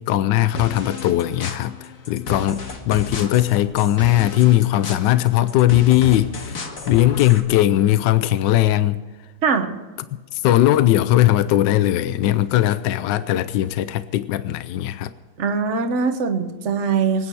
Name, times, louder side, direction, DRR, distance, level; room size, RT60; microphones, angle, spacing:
voice 1, 0.0-9.0 10.3-15.1, left 14 dB, 80° left, 14 dB, 1.3 m, -19 dB
sound 1, 0.6-7.4, left 4 dB, 50° left, 1.8 m, -33 dB
voice 2, 9.4-9.7 15.4-17.3, right 5 dB, 45° right, 6 dB, 1.5 m, -22 dB
25.0 x 9.6 x 4.6 m, 1.3 s
omnidirectional pair, 2.0 m